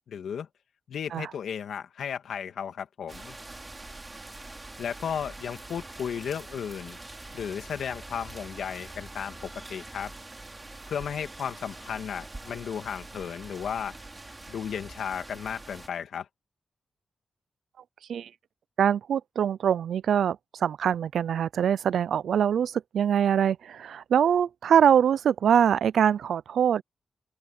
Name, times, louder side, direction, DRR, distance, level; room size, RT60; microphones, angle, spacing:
voice 1, 0.1-0.5 0.9-3.4 4.8-7.0 7.3-10.1 10.9-14.0 14.5-16.3, left 8 dB, 80° left, 2.1 m, -34 dB
sound 1, 3.1-15.9, right 2 dB, 20° right, 5.7 m, -44 dB
voice 2, 18.8-26.8, right 8 dB, 80° right, 0.4 m, -23 dB
open air
cardioid pair, 85°, 0 cm